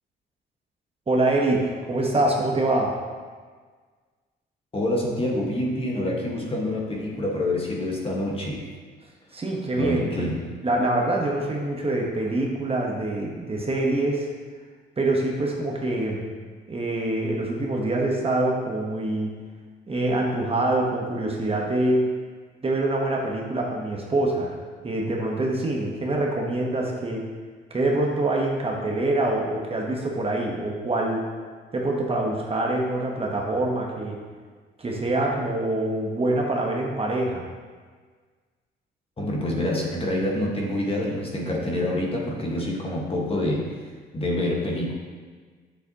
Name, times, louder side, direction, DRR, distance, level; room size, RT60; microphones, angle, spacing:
voice 1, 1.1-2.9 9.3-14.3 15.0-16.3 16.7-19.3 19.9-22.1 22.6-27.3 27.7-31.2 31.7-34.2 34.8-37.4, right 2 dB, 30° right, -1 dB, 1.1 m, -25 dB
voice 2, 4.7-8.7 9.8-10.5 39.2-43.8 44.1-44.9, left 1 dB, 30° left, -2 dB, 1.5 m, -27 dB
7.5 x 6.9 x 2.9 m, 1.5 s
cardioid pair, 90°, 20 cm